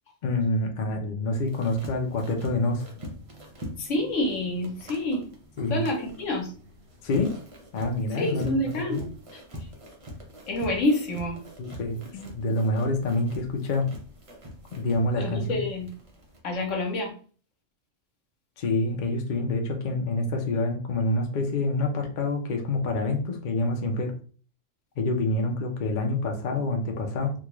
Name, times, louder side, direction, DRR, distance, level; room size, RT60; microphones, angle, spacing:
voice 1, 0.2-2.9 5.6-5.8 7.0-7.3 7.7-9.1 11.6-12.0 12.3-14.0 14.7-15.6 18.6-24.1 25.0-27.3, left 2 dB, 50° left, 3 dB, 0.6 m, -27 dB
sound 1, 1.3-16.4, equal, 35° right, 0.7 m, -44 dB
voice 2, 3.8-5.3 5.7-6.5 8.1-9.0 9.3-9.4 10.5-11.4 12.1-12.3 15.1-15.9 16.4-17.1, left 1 dB, 75° left, 2 dB, 1.3 m, -28 dB
3.5 x 2.4 x 3.0 m, 0.40 s
omnidirectional pair, 1.3 m